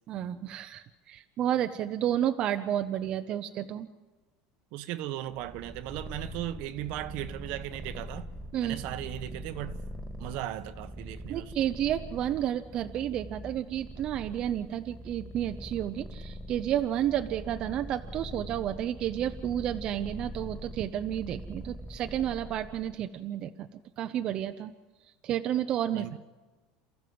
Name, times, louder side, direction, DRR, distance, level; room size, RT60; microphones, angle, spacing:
voice 1, 0.1-3.9 8.5-8.8 11.3-23.7 24.0-24.7 25.2-26.1, right 11 dB, 45° right, 0.8 m, -31 dB
voice 2, 4.7-8.3 8.6-9.8 10.2-11.5 25.9-26.2, right 13 dB, 65° right, 1.1 m, -37 dB
Purr, 5.3-23.0, right 1 dB, 5° right, 2.1 m, -43 dB
28.0 x 14.5 x 7.8 m
supercardioid pair, 130°, 2 cm